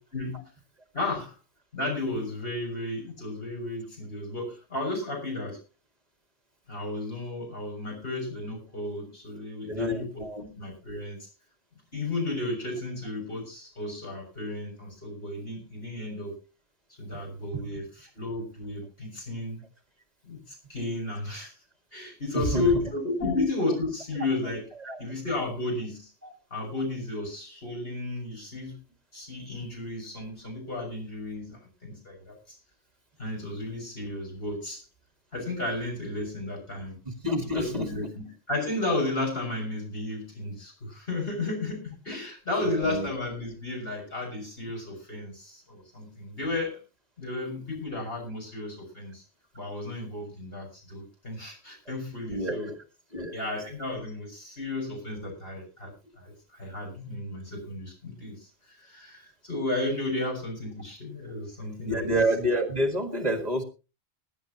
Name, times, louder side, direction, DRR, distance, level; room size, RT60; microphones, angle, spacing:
voice 1, 0.1-0.5 0.9-1.3 1.7-5.6 6.7-11.3 11.9-16.3 17.0-19.6 20.2-21.5 21.9-24.6 25.0-26.1 26.5-28.8 29.1-32.6 33.2-34.8 35.3-37.0 37.5-46.8 47.2-49.2 49.6-52.7 53.3-55.9 56.2-58.5 58.8-62.1, left 2 dB, 60° left, 0 dB, 6.9 m, -33 dB
voice 2, 9.7-10.4 17.1-17.2 22.3-22.9 23.2-23.3 24.8-25.0 26.2-26.3 37.2-37.9 42.6-43.1 52.3-52.8 53.1-53.4 61.9-63.6, equal, 40° right, 6 dB, 1.9 m, -28 dB
21.5 x 10.5 x 3.0 m, 0.31 s
omnidirectional pair, 1.1 m